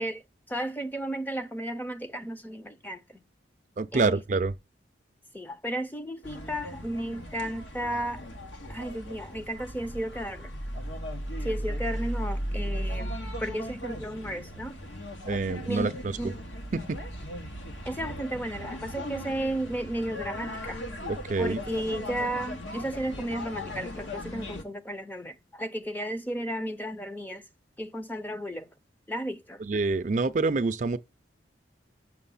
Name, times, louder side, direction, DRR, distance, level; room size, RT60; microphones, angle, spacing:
voice 1, 0.0-3.2 3.9-4.2 5.3-8.2 8.7-10.5 11.4-14.8 15.7-15.9 16.2-16.3 17.8-20.8 21.4-27.5 27.8-28.7 29.1-29.6, right 1 dB, 10° left, 0.5 m, -34 dB
voice 2, 3.8-4.5 15.3-16.2 16.7-17.0 21.1-21.6 29.6-31.0, right 3 dB, 40° right, 0.4 m, -27 dB
sound 1, 6.2-24.6, equal, 85° left, 1.4 m, -37 dB
6.7 x 6.2 x 5.5 m
head